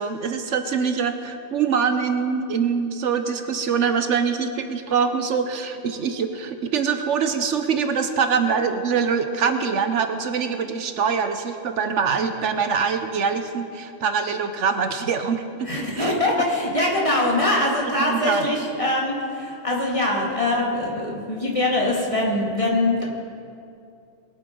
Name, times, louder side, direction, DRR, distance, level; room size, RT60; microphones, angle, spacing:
voice 1, 0.0-16.1 17.8-18.5, right 6 dB, 70° right, 8 dB, 1.0 m, -24 dB
voice 2, 15.7-23.0, left 1 dB, 25° left, -3 dB, 2.3 m, -23 dB
21.0 x 8.2 x 5.3 m, 2.5 s
omnidirectional pair, 1.3 m